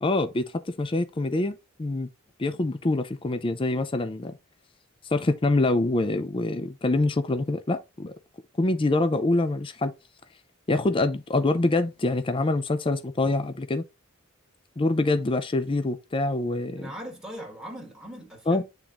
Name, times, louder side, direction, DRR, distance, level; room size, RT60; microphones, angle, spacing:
voice 1, 0.0-0.4 0.8-2.1 2.4-4.3 5.1-8.1 8.6-9.9 10.7-13.8 14.8-16.9 18.5-18.6, left 2 dB, 25° left, 0.5 m, -25 dB
voice 2, 16.8-18.6, equal, 5° right, 1.6 m, -40 dB
8.8 x 3.7 x 2.9 m
head